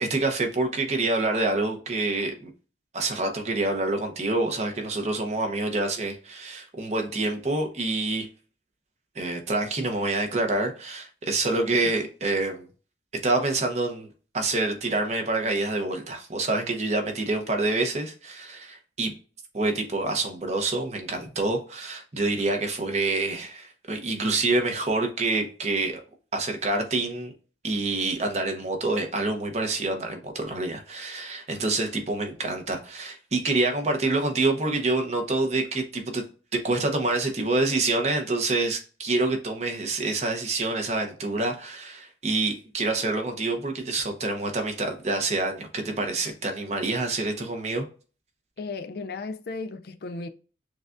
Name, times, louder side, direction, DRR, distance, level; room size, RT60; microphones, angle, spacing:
voice 1, 0.0-2.5 2.9-8.3 9.2-12.7 13.2-14.1 14.3-19.1 19.5-26.0 26.3-27.3 27.6-36.2 36.5-47.9, right 2 dB, 40° right, 0.8 m, -27 dB
voice 2, 48.6-50.3, left 3 dB, 60° left, 0.4 m, -35 dB
6.3 x 2.3 x 2.4 m
head